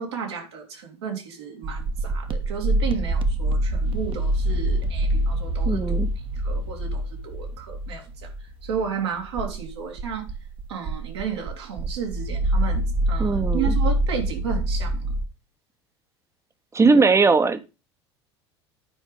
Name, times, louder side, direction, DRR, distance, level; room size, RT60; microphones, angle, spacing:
voice 1, 0.0-6.0 6.4-10.3 10.7-15.1, right 6 dB, 75° right, 2.7 m, -33 dB
sound 1, 1.6-15.2, right 1 dB, 35° right, 1.3 m, -25 dB
voice 2, 5.7-6.1 13.2-13.8 16.7-17.6, right 4 dB, 20° right, 1.1 m, -19 dB
9.9 x 5.0 x 5.3 m
hypercardioid pair, 70°, 14 cm